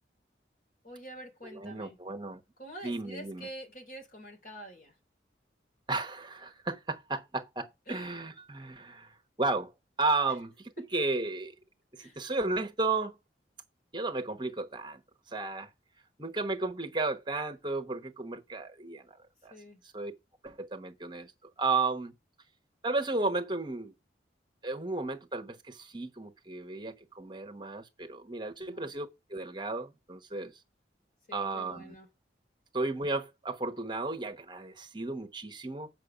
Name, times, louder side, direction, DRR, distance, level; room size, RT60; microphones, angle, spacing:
voice 1, 0.8-2.0 2.6-4.9 7.9-8.1 10.8-10.9 12.0-12.2 19.5-19.8 28.6-28.9 31.3-32.1, right 1 dB, 45° left, 3.2 m, -47 dB
voice 2, 1.5-2.4 2.8-3.5 5.9-9.7 10.0-11.5 11.9-13.1 13.9-15.0 15.3-15.7 16.2-19.2 19.4-19.5 19.9-20.1 20.4-21.3 21.6-22.1 22.8-23.9 24.6-30.5 31.3-31.9 32.7-35.9, right 3 dB, 25° right, 0.9 m, -33 dB
8.4 x 5.9 x 4.9 m
head